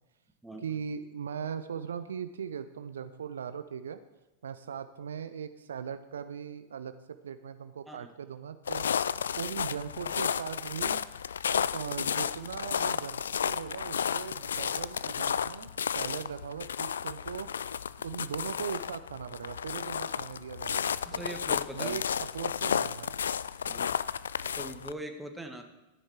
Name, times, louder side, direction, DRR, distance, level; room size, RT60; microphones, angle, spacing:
voice 1, 0.6-4.0 4.4-6.9 7.2-8.9 9.4-11.0 11.7-17.5 18.0-21.2 21.7-23.2, right 7 dB, 65° right, 11 dB, 0.5 m, -39 dB
sound 1, 8.7-24.9, left 7 dB, 70° left, 0.3 m, -32 dB
voice 2, 21.0-22.0 23.6-24.0 24.6-25.6, right 1 dB, 5° right, 5 dB, 1.4 m, -41 dB
13.5 x 9.5 x 4.5 m, 1.0 s
figure-of-eight pair, 90°, 0 cm